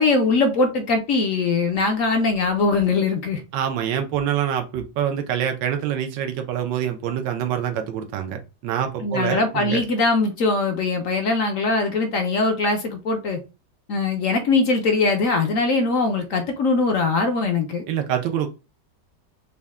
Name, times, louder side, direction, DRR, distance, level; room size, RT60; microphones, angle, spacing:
voice 1, 0.0-3.4 9.0-13.4 13.9-17.8, left 3 dB, 60° left, 0.9 m, -21 dB
voice 2, 3.5-9.8 17.9-18.5, right 9 dB, 90° right, 1.4 m, -25 dB
5.3 x 2.1 x 3.5 m
omnidirectional pair, 1.9 m